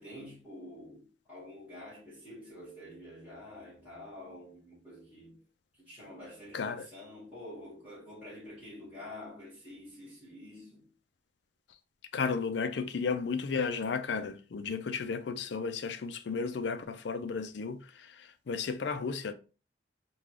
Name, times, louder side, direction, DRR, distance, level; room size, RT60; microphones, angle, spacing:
voice 1, 0.0-5.4 5.7-10.9, left 1 dB, 10° right, 1.8 m, -48 dB
voice 2, 6.5-6.9 12.1-19.3, left 5 dB, 70° left, 0.4 m, -34 dB
3.6 x 2.3 x 3.2 m
head